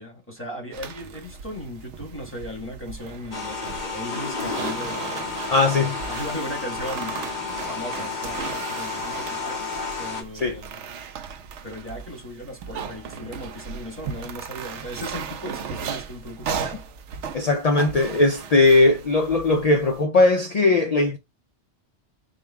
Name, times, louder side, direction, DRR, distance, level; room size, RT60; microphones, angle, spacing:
voice 1, 0.0-5.3 6.1-7.4 7.6-9.7 10.0-10.8 11.6-16.9, equal, 10° left, 1.4 m, -37 dB
sound 1, 0.7-20.0, right 7 dB, 85° right, 0.9 m, -37 dB
sound 2, 3.3-10.2, left 4 dB, 40° left, 1.2 m, -31 dB
voice 2, 5.5-6.0 10.4-10.6 17.3-21.2, left 2 dB, 65° left, 0.3 m, -19 dB
5.1 x 2.3 x 3.4 m
omnidirectional pair, 1.2 m